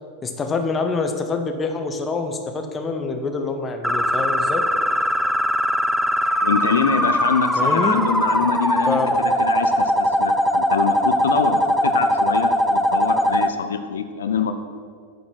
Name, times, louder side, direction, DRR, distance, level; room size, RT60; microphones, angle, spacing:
voice 1, 0.2-4.6 7.6-8.0 8.9-9.2, left 4 dB, 20° left, 6 dB, 0.9 m, -25 dB
sound 1, 3.8-13.5, equal, ahead, 0.4 m, -20 dB
voice 2, 6.4-14.5, left 6 dB, 65° left, 9 dB, 0.5 m, -24 dB
8.8 x 5.1 x 6.1 m, 2.1 s
figure-of-eight pair, 90°, 0 cm